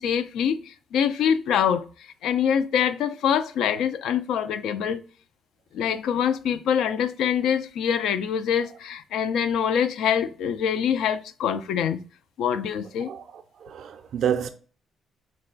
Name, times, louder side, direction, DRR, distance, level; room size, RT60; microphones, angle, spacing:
voice 1, 0.0-1.8 2.2-5.0 5.7-12.0 12.4-13.1, left 8 dB, 80° left, 0.3 m, -24 dB
voice 2, 13.6-14.5, right 8 dB, 65° right, 0.4 m, -28 dB
4.1 x 2.2 x 3.7 m
cardioid pair, 90°, 0 cm